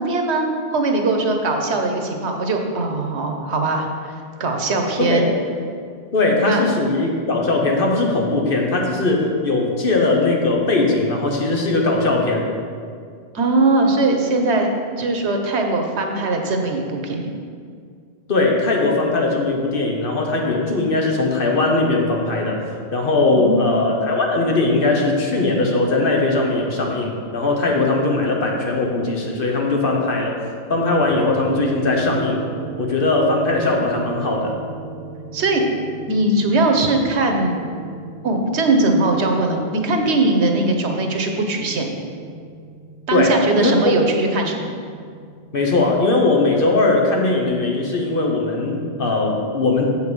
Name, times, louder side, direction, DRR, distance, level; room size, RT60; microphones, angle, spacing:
voice 1, 0.0-4.1 4.4-5.3 6.4-6.6 13.3-14.7 15.0-17.3 23.3-23.7 35.3-35.6 36.1-37.6 38.2-41.9 43.1-44.7, right 2 dB, 90° right, 3 dB, 1.3 m, -20 dB
voice 2, 5.0-5.3 6.1-12.4 18.3-30.3 30.7-32.4 32.8-34.6 43.1-43.9 45.5-49.8, left 2 dB, 55° left, 0 dB, 1.3 m, -19 dB
sound 1, 31.0-45.5, right 4 dB, 40° right, 1.2 m, -35 dB
7.5 x 5.7 x 6.2 m, 2.2 s
omnidirectional pair, 1.1 m